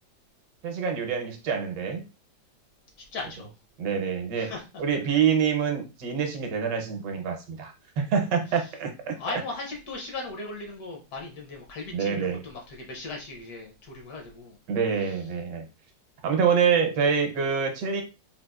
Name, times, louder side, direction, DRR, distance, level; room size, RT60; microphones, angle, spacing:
voice 1, 0.6-2.0 3.8-4.5 4.8-9.4 11.9-12.4 14.7-15.6 16.2-18.0, right 6 dB, 75° right, 4 dB, 1.4 m, -26 dB
voice 2, 3.1-3.5 4.3-4.6 9.2-14.6 15.0-15.2, left 3 dB, 65° left, 1 dB, 1.2 m, -37 dB
4.0 x 2.4 x 2.3 m, 0.29 s
omnidirectional pair, 2.0 m